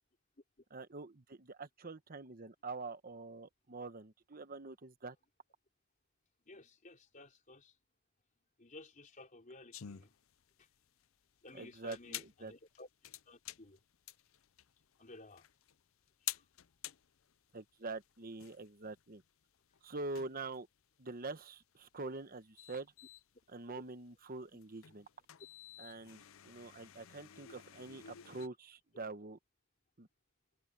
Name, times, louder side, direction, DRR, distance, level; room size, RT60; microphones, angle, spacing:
voice 1, 0.7-5.2 11.5-12.5 17.5-19.2 19.8-20.7 21.0-22.9 23.5-25.1 25.8-29.4 30.0-30.1, right 3 dB, 45° right, 1.2 m, -45 dB
voice 2, 6.4-7.8 8.6-10.1 10.6-10.7 11.4-13.8 15.0-15.5 16.2-16.5, left 2 dB, 40° left, 4.0 m, -55 dB
sound 1, 9.7-28.5, left 13 dB, 75° left, 0.6 m, -51 dB
head